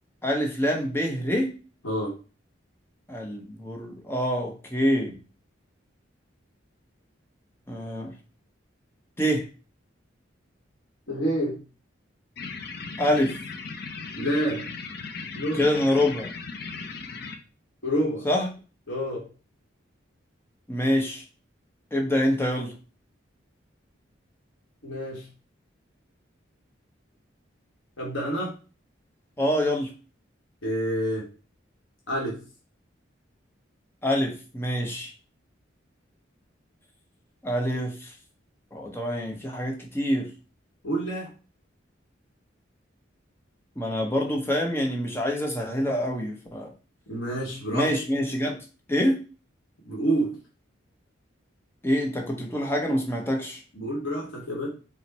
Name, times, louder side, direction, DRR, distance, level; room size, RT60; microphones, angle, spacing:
voice 1, 0.2-1.5 3.1-5.1 7.7-8.1 9.2-9.5 13.0-13.4 15.5-16.3 18.2-18.5 20.7-21.2 21.9-22.7 29.4-29.9 34.0-35.1 37.4-38.1 38.7-40.3 43.8-46.7 47.7-48.6 48.9-49.2 51.8-53.6, equal, 10° left, 1 dB, 0.7 m, -26 dB
voice 2, 1.8-2.2 11.1-11.6 14.2-14.7 15.3-15.6 17.8-18.3 18.9-19.3 24.8-25.3 28.0-28.5 30.6-31.3 32.1-32.4 40.8-41.3 47.1-47.9 49.8-50.4 53.7-54.7, right 1 dB, 85° left, -3 dB, 1.2 m, -28 dB
sound 1, 12.4-17.4, left 4 dB, 55° left, 0.5 m, -37 dB
4.3 x 2.1 x 4.1 m, 0.35 s
head